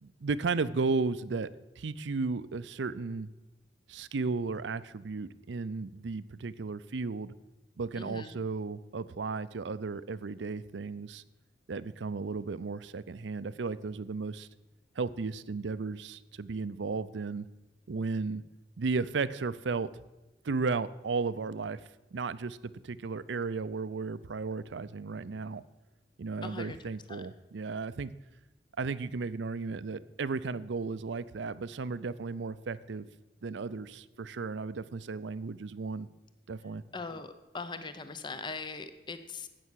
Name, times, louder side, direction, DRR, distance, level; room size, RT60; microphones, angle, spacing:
voice 1, 0.0-1.5 1.8-3.3 3.9-7.3 7.8-11.2 11.7-14.5 15.0-17.5 17.9-18.4 18.8-19.9 20.4-21.8 22.1-22.6 22.8-25.6 26.2-28.1 28.8-33.1 33.4-36.1 36.5-36.8, right 4 dB, 75° right, 16 dB, 0.5 m, -34 dB
voice 2, 8.0-8.4 26.4-26.8 27.1-27.2 36.9-39.5, left 4 dB, 25° left, 10 dB, 0.7 m, -40 dB
12.5 x 8.5 x 6.3 m, 1.1 s
head